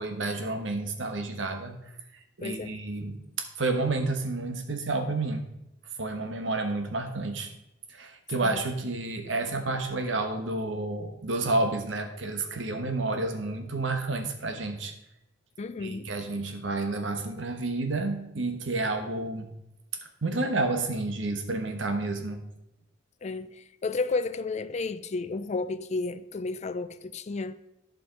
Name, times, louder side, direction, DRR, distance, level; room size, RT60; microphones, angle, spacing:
voice 1, 0.0-1.8 2.4-5.5 6.0-7.5 7.9-14.9 15.8-19.5 20.2-22.4, right 2 dB, 75° right, 1.3 m, -30 dB
voice 2, 2.4-2.8 8.4-8.6 15.6-16.1 23.2-27.6, left 3 dB, 35° left, 0.4 m, -32 dB
11.5 x 5.3 x 5.2 m
head